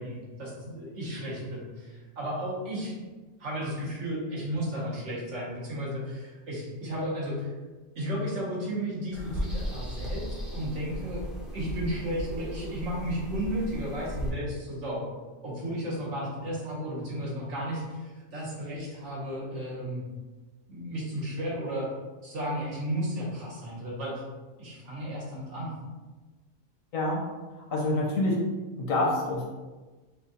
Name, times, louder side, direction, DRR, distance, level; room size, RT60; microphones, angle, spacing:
voice 1, 0.0-3.0 3.4-7.5 7.9-10.2 10.5-11.2 11.5-15.0 15.4-20.0 20.7-21.9 22.2-24.2 24.6-25.7, equal, 65° right, -4 dB, 1.4 m, -33 dB
sound 1, 9.1-14.3, equal, ahead, 0.5 m, -36 dB
voice 2, 26.9-27.2 27.7-28.4 28.8-29.5, left 2 dB, 85° left, -2 dB, 1.3 m, -26 dB
6.0 x 2.3 x 2.8 m, 1.3 s
omnidirectional pair, 1.4 m